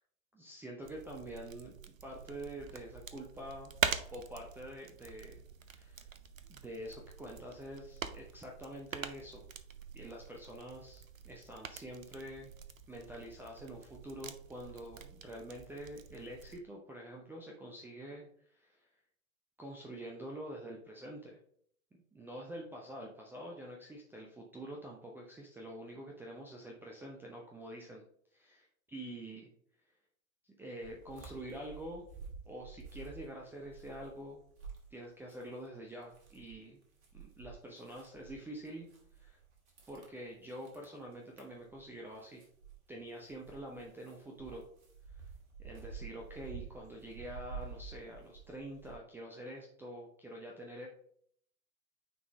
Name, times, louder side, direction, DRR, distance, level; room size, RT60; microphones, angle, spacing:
voice 1, 0.3-3.7 4.1-5.4 5.7-6.1 6.5-9.5 9.9-12.5 12.9-18.3 18.5-18.9 19.6-21.4 22.1-28.0 28.3-29.5 30.4-32.1 32.5-34.4 34.9-36.8 37.1-38.9 39.2-39.4 39.9-42.4 42.9-44.7 45.6-50.9, right 1 dB, 5° right, -1 dB, 0.6 m, -46 dB
sound 1, 0.8-16.6, right 7 dB, 75° right, 0.7 m, -44 dB
sound 2, 30.8-35.7 35.9-49.0, right 5 dB, 55° right, 2.2 m, -51 dB
9.2 x 3.8 x 3.1 m, 0.63 s
figure-of-eight pair, 100°, 41 cm